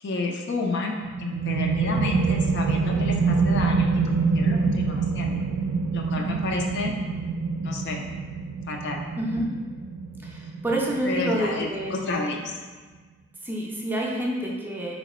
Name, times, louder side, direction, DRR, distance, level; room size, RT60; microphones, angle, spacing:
voice 1, 0.0-5.4 5.9-6.9 7.6-8.1 8.7-9.0 11.0-12.5, left 3 dB, 60° left, 1 dB, 0.5 m, -30 dB
sound 1, 1.0-12.4, right 4 dB, 75° right, 0.3 m, -26 dB
voice 2, 6.2-6.5 9.2-9.5 10.2-12.0 13.4-14.9, right 1 dB, 10° right, -3 dB, 0.5 m, -28 dB
3.1 x 2.8 x 4.2 m, 1.4 s
head